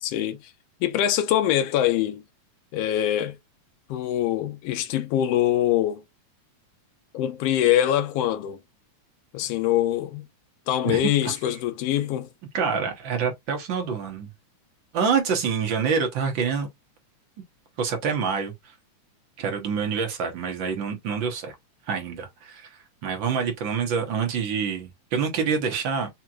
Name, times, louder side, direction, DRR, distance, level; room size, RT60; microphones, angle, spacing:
voice 1, 0.0-0.4 0.8-2.2 2.7-3.4 3.9-6.0 7.1-8.6 9.3-10.2 10.7-12.3, left 12 dB, 80° left, 1.4 m, -23 dB
voice 2, 12.5-14.3 14.9-16.7 17.8-18.7 19.4-21.5 21.9-26.1, right 6 dB, 65° right, 1.2 m, -26 dB
4.9 x 2.9 x 2.3 m
omnidirectional pair, 3.5 m